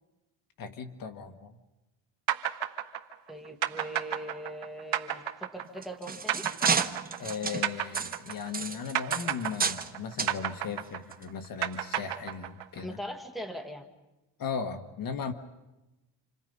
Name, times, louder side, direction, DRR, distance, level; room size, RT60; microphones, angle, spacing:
voice 1, 0.6-1.6 7.2-13.0 14.4-15.3, left 6 dB, 45° left, 7 dB, 1.5 m, -37 dB
sound 1, 2.3-8.6 8.9-12.8, right 11 dB, 60° right, 1.7 m, -32 dB
voice 2, 3.3-6.5 12.8-13.9, right 1 dB, ahead, 4 dB, 1.8 m, -40 dB
sound 2, 5.7-9.9 10.2-10.4 11.1-11.2 11.7-11.8, right 5 dB, 20° right, 0.8 m, -31 dB
28.5 x 27.0 x 5.4 m, 1.0 s
cardioid pair, 150°, 46 cm